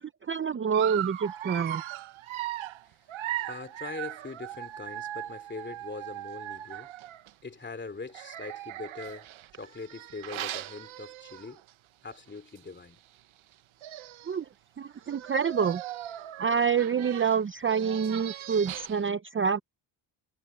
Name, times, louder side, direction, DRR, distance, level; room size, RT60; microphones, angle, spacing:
voice 1, 0.0-1.8 14.3-14.5 14.8-15.8 16.4-19.6, right 6 dB, 25° right, 0.6 m, -27 dB
Dog, 0.7-7.3 8.1-11.7 12.1-12.3 12.6-12.7 13.5-13.6 13.8-14.4 15.0-19.1, right 13 dB, 80° right, 1.2 m, -39 dB
voice 2, 3.5-6.9 7.4-9.3 9.6-11.6 12.0-13.0, left 4 dB, 25° left, 2.9 m, -42 dB
cardioid pair, 125°, 48 cm